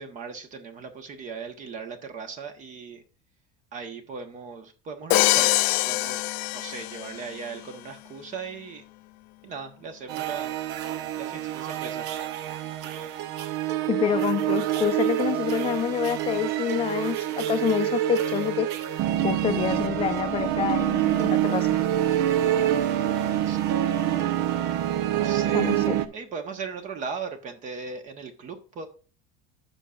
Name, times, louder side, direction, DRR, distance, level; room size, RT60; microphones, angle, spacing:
voice 1, 0.0-3.0 3.7-5.5 5.9-6.2 6.5-8.8 9.4-10.5 11.2-12.1 22.5-22.7 23.2-23.6 25.1-25.8 26.1-28.9, right 5 dB, 35° right, 1.3 m, -38 dB
Crash cymbal, 5.1-7.3, left 20 dB, 65° left, 0.5 m, -24 dB
sound 1, 10.1-26.1, right 12 dB, 55° right, 0.9 m, -26 dB
voice 2, 13.9-18.7 19.2-21.8 25.5-26.0, left 10 dB, 25° left, 0.7 m, -27 dB
15.0 x 5.8 x 2.5 m
cardioid pair, 145°, 21 cm